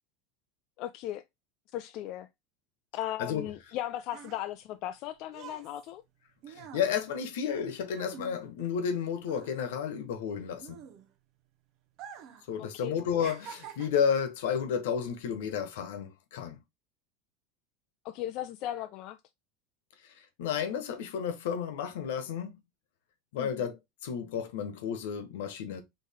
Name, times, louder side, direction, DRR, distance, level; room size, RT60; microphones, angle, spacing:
voice 1, 0.8-1.2 1.7-2.3 2.9-6.0 12.6-13.0 18.0-19.2 23.4-23.7, left 13 dB, 55° left, 0.3 m, -37 dB
sound 1, 3.6-9.0 9.2-11.4 11.9-12.5 12.8-14.2 14.9-15.1, right 8 dB, 50° right, 0.7 m, -48 dB
voice 2, 6.5-10.8 12.5-16.6 20.4-22.5 23.3-23.8 24.0-25.8, left 7 dB, 85° left, 1.1 m, -32 dB
4.5 x 3.1 x 3.5 m
supercardioid pair, 130°, 0 cm